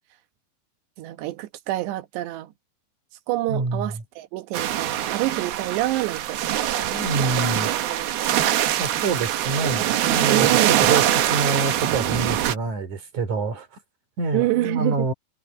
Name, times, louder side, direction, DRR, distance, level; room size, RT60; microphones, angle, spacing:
voice 1, 1.0-2.5 3.3-6.4 7.4-7.5 7.7-8.5 10.3-11.0 14.3-15.1, right 17 dB, 85° right, 3.3 m, -27 dB
voice 2, 3.5-3.9 6.9-7.7 8.8-10.5 10.8-13.7 14.2-15.1, right 3 dB, 45° right, 4.9 m, -26 dB
sound 1, 4.5-12.5, right 12 dB, 70° right, 3.1 m, -23 dB
omnidirectional pair, 4.8 m